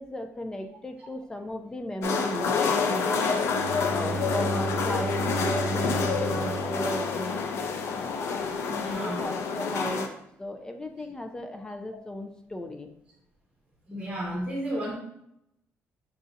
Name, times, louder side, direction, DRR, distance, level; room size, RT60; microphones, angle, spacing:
voice 1, 0.0-7.5 8.8-10.1 10.4-12.9, left 1 dB, 15° left, 5 dB, 0.5 m, -35 dB
sound 1, 2.0-10.1, left 5 dB, 70° left, 0.5 m, -28 dB
Bowed string instrument, 3.4-7.9, right 3 dB, 45° left, 0.9 m, -34 dB
voice 2, 8.6-9.3 13.9-14.9, equal, 15° right, -4 dB, 1.2 m, -32 dB
6.7 x 2.7 x 2.5 m, 0.78 s
cardioid pair, 120°, 5 cm